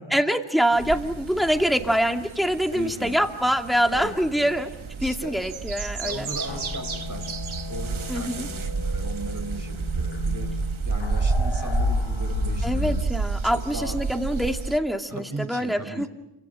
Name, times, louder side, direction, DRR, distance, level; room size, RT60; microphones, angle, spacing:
voice 1, 0.1-4.7 5.0-6.3 8.1-8.5 12.6-16.1, equal, ahead, 4 dB, 2.5 m, -24 dB
sound 1, 0.7-14.8, right 5 dB, 80° right, 1.1 m, -31 dB
voice 2, 2.7-3.1 3.9-4.5 5.0-5.4 6.0-7.4 7.7-13.0 13.4-14.0 15.1-16.1, right 2 dB, 40° right, 5 dB, 4.4 m, -37 dB
sound 2, 6.5-13.0, left 5 dB, 65° left, 1.0 m, -32 dB
29.5 x 25.5 x 7.9 m, 0.92 s
wide cardioid pair, 45°, 47 cm